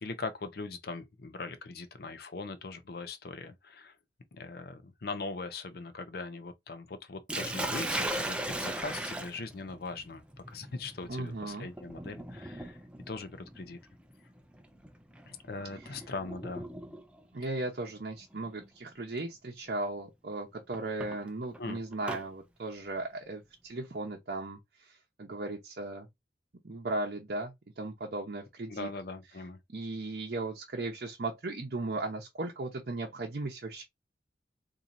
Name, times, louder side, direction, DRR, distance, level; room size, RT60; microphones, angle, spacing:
voice 1, 0.0-3.9 4.3-10.2 10.5-12.8 13.1-13.8 15.3-16.6 21.6-21.8 28.7-29.6, left 3 dB, 60° left, 0.6 m, -40 dB
Sink (filling or washing), 7.3-17.2 18.3-18.7 19.2-19.3 20.7-22.2, right 1 dB, 5° right, 0.4 m, -38 dB
voice 2, 11.1-11.7 15.8-16.0 17.3-26.1 26.6-28.9 29.7-33.8, right 2 dB, 60° right, 0.7 m, -37 dB
4.2 x 2.7 x 2.5 m
head